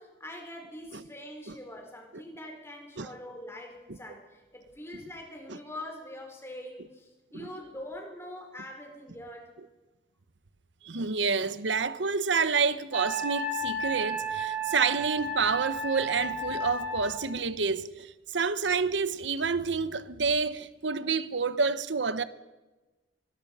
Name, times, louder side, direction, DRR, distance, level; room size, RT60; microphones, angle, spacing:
voice 1, 0.0-9.5, left 1 dB, 15° left, 4.8 m, -43 dB
voice 2, 10.8-22.2, right 5 dB, 80° right, 1.0 m, -28 dB
Wind instrument woodwind instrument, 12.9-17.2, right 2 dB, 10° right, 4.8 m, -33 dB
25.0 x 19.5 x 5.5 m
head